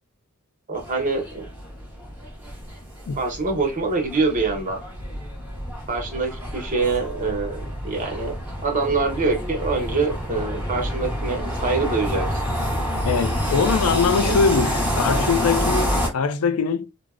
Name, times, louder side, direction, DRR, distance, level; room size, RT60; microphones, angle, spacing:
sound 1, 0.7-16.1, equal, 10° right, 0.8 m, -28 dB
voice 1, 0.7-1.5 3.2-4.8 5.9-8.3 8.6-12.6 14.2-14.4, right 3 dB, 35° right, 0.8 m, -25 dB
voice 2, 13.0-16.9, left 5 dB, 90° left, 0.4 m, -22 dB
3.3 x 2.0 x 2.4 m
head